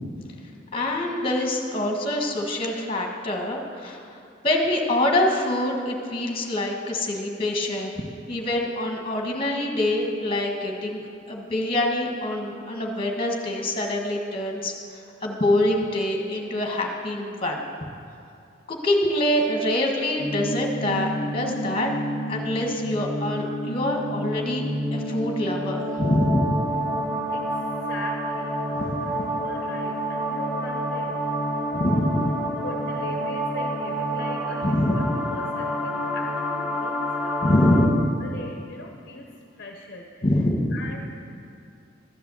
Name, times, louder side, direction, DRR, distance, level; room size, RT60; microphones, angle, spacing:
voice 1, 0.7-4.0 4.4-11.0 11.3-17.7 18.7-21.9 22.3-24.6 24.9-26.6 28.7-29.2 31.7-32.4 34.6-35.1 37.4-38.0 40.2-40.8, left 1 dB, 30° left, 1 dB, 1.4 m, -25 dB
sound 1, 20.2-37.9, equal, ahead, 1.4 m, -29 dB
voice 2, 27.3-28.6 29.3-31.2 32.6-37.6 38.2-39.3 39.6-40.2 40.7-41.0, left 2 dB, 50° left, 2 dB, 0.8 m, -40 dB
13.0 x 6.8 x 7.9 m, 2.6 s
head